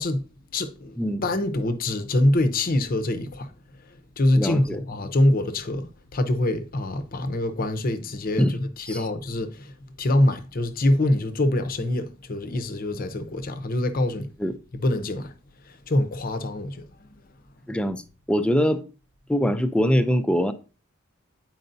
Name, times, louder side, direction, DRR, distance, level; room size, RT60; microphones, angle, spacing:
voice 1, 0.0-3.5 3.9-14.3 14.7-15.3 15.7-17.1, left 1 dB, 45° left, 0.7 m, -25 dB
voice 2, 4.4-4.8 8.4-8.6 8.9-9.0 14.4-14.5 17.7-18.0 18.3-18.9 19.3-20.5, equal, 5° left, 0.4 m, -23 dB
8.9 x 4.7 x 2.6 m
head